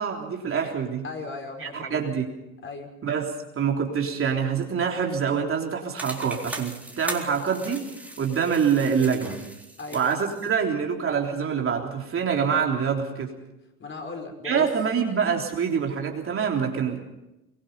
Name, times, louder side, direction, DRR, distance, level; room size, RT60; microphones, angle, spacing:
voice 1, 0.0-1.0 1.6-2.2 3.0-7.8 8.2-9.4 9.9-13.3 14.4-17.0, right 6 dB, 30° right, 1 dB, 3.6 m, -25 dB
voice 2, 1.0-2.1 2.6-2.9 9.8-10.1 13.8-14.7, left 3 dB, 25° left, 3 dB, 5.5 m, -37 dB
sound 1, 6.0-10.6, right 1 dB, 5° right, 3.9 m, -39 dB
23.5 x 22.5 x 5.5 m, 0.90 s
hypercardioid pair, 75°, 42 cm